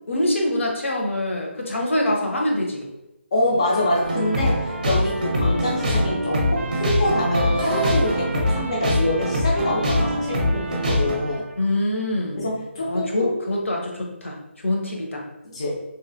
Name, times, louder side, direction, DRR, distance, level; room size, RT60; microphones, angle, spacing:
voice 1, 0.1-2.9 11.6-12.4 12.8-14.4 14.6-15.2, left 1 dB, 75° left, 0 dB, 0.9 m, -24 dB
voice 2, 3.3-11.4 12.4-13.3 15.4-15.8, left 1 dB, 25° left, -3 dB, 0.4 m, -25 dB
Trumpet, 3.6-11.7, right 2 dB, 80° right, 0.5 m, -38 dB
sound 1, 4.0-11.2, left 1 dB, 35° right, 0.6 m, -23 dB
3.1 x 2.5 x 2.5 m, 0.92 s
hypercardioid pair, 175°, 7 cm